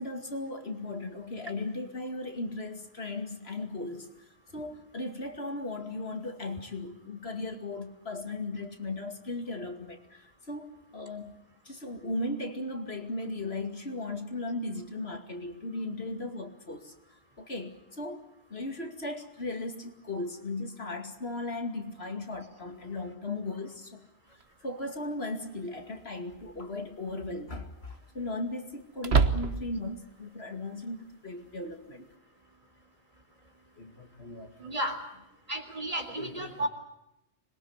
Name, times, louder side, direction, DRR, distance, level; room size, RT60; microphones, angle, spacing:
voice 1, 0.0-4.1 4.5-11.4 11.6-16.9 17.4-24.1 24.6-32.1 33.8-34.8 36.2-36.7, left 2 dB, 75° left, 5 dB, 2.7 m, -37 dB
sound 1, 24.4-24.5 26.3-26.7 27.1-27.2 29.0-29.9, right 5 dB, 80° right, 1.6 m, -26 dB
voice 2, 34.6-35.0 35.5-36.7, right 1 dB, 35° right, 5 dB, 3.8 m, -33 dB
26.0 x 22.0 x 8.1 m, 0.85 s
omnidirectional pair, 1.1 m